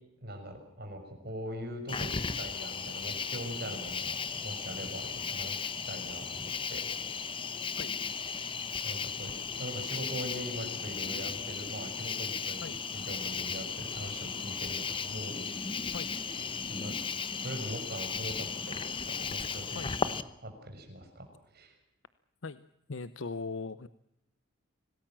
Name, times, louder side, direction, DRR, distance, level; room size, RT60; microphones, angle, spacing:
voice 1, 0.2-6.8 8.8-9.3 9.6-12.6 12.9-15.4 15.8-16.1 16.7-16.9 17.4-20.1 20.4-21.3 21.5-21.7, equal, 50° right, 4 dB, 6.3 m, -42 dB
Cricket, 1.9-20.2, left 5 dB, 25° left, 1.0 m, -36 dB
voice 2, 22.9-23.9, left 4 dB, 75° left, 14 dB, 0.8 m, -39 dB
26.5 x 18.5 x 7.5 m, 0.82 s
head